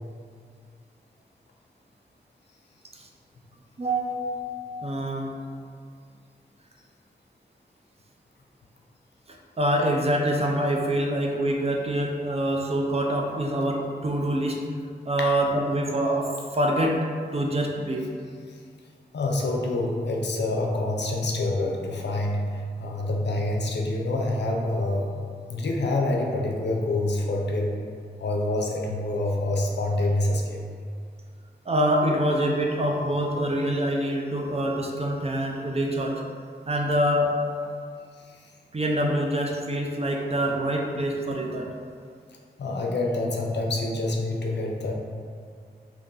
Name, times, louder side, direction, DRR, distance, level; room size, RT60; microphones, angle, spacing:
voice 1, 3.8-5.3 9.6-14.6 15.0-17.0 17.3-18.1 31.7-36.2 36.7-37.3 38.7-41.7, right 1 dB, 35° right, 0 dB, 0.5 m, -25 dB
voice 2, 19.1-25.2 25.5-27.8 28.2-30.6 38.3-38.5 42.6-44.9, left 2 dB, 75° left, 0 dB, 0.5 m, -27 dB
2.9 x 2.6 x 3.7 m, 2.1 s
cardioid pair, 45°, 18 cm